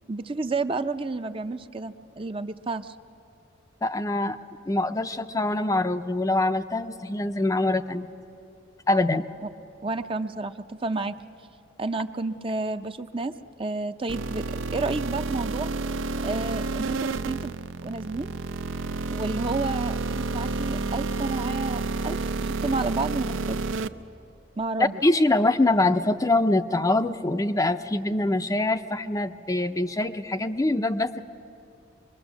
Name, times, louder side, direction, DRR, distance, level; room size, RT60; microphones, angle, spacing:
voice 1, 0.1-2.9 9.8-11.2 11.8-14.5 14.7-15.7 16.2-17.5 17.8-18.3 19.1-23.6 24.6-24.9, right 3 dB, 25° right, 9 dB, 0.5 m, -30 dB
voice 2, 3.8-4.4 4.7-8.1 8.9-9.3 24.8-31.2, left 2 dB, 20° left, 9 dB, 0.5 m, -24 dB
sound 1, 14.1-23.9, right 3 dB, 90° right, 0.6 m, -30 dB
24.5 x 22.0 x 7.1 m, 2.9 s
head